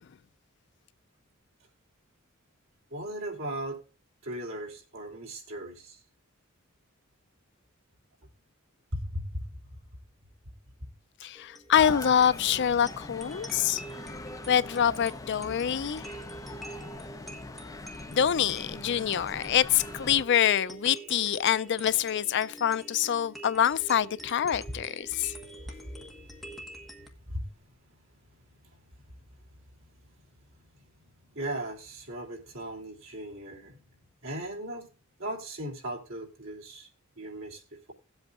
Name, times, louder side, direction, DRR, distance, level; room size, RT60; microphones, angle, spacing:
voice 1, 2.9-3.8 4.2-6.0 8.9-9.8 10.5-10.6 11.2-11.3 24.7-24.8 25.6-25.8 27.2-27.5 31.3-33.8 34.2-34.9 35.2-36.9 37.2-37.9, right 1 dB, 80° right, 2.9 m, -37 dB
voice 2, 11.2-13.8 14.5-16.0 18.1-25.3, left 9 dB, 55° left, 0.4 m, -25 dB
sound 1, 11.3-27.1, right 1 dB, ahead, 1.3 m, -46 dB
sound 2, 11.7-20.3, left 2 dB, 15° left, 0.7 m, -42 dB
18.5 x 8.0 x 2.4 m
head